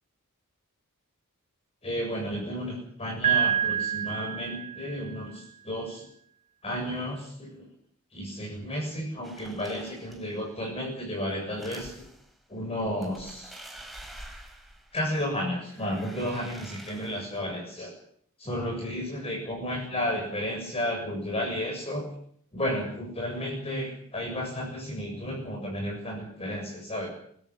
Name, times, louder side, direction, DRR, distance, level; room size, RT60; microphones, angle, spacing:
voice 1, 1.8-6.0 6.6-7.7 8.1-12.1 12.5-13.5 14.9-17.9 18.4-22.1 22.5-27.1, equal, 25° left, 0 dB, 7.1 m, -32 dB
Piano, 3.2-5.2, right 9 dB, 30° right, 3.8 m, -27 dB
sound 1, 9.2-10.4 11.4-12.3 12.8-15.3 15.6-17.4, right 1 dB, ahead, 4.5 m, -47 dB
26.0 x 14.0 x 9.7 m, 0.64 s
head